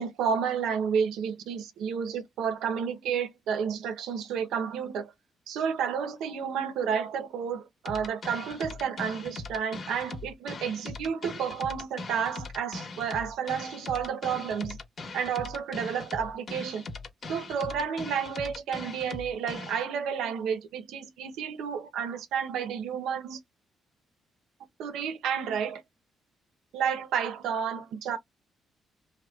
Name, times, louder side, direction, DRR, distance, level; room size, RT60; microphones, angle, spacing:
voice 1, 0.0-5.1 5.5-14.8 15.1-16.8 17.3-23.4 24.8-25.8 26.7-28.2, right 7 dB, 85° right, 0.6 m, -31 dB
sound 1, 7.9-19.9, left 3 dB, 45° left, 0.9 m, -40 dB
2.9 x 2.2 x 2.2 m
cardioid pair, 90°, 0 cm